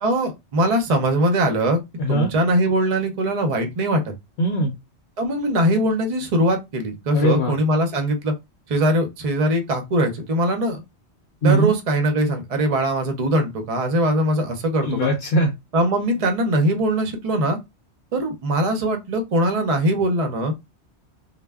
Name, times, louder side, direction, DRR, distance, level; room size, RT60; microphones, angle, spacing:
voice 1, 0.0-1.8 2.1-4.0 5.2-8.3 8.7-10.8 11.4-15.1 15.7-17.6 18.1-20.5, right 1 dB, 45° right, 0.5 m, -21 dB
voice 2, 2.0-2.3 4.4-4.7 7.1-7.5 11.4-11.7 14.8-15.5, right 1 dB, 70° left, 0.8 m, -20 dB
2.1 x 2.0 x 3.4 m
omnidirectional pair, 1.1 m